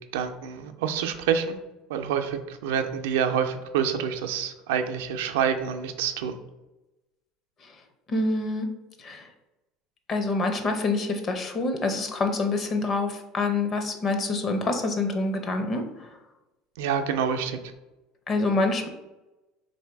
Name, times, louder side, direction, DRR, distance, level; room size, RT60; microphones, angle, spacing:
voice 1, 0.1-1.6 1.9-6.4 16.8-17.6, right 7 dB, 90° right, 7 dB, 0.4 m, -27 dB
voice 2, 8.1-8.7 9.0-9.2 10.1-15.8 18.3-18.9, left 3 dB, 35° left, 5 dB, 0.7 m, -26 dB
3.2 x 2.7 x 4.5 m, 1.0 s
supercardioid pair, 120°, 0 cm